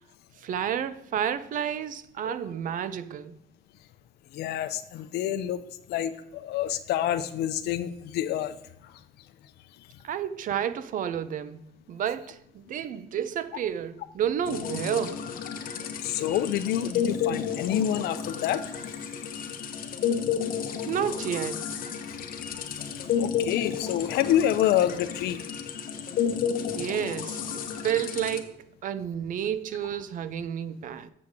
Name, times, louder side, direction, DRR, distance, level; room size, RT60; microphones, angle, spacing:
voice 1, 0.4-3.4 10.0-11.6 11.9-15.2 20.8-21.7 26.8-31.1, right 9 dB, 50° right, 0.5 m, -31 dB
voice 2, 4.3-5.6 5.9-8.5 16.0-18.6 22.5-22.6 23.2-25.4, left 11 dB, 75° left, 0.5 m, -27 dB
sound 1, 14.5-28.4, left 7 dB, 55° left, 1.0 m, -32 dB
7.8 x 6.4 x 3.6 m
cardioid pair, 110°, 17 cm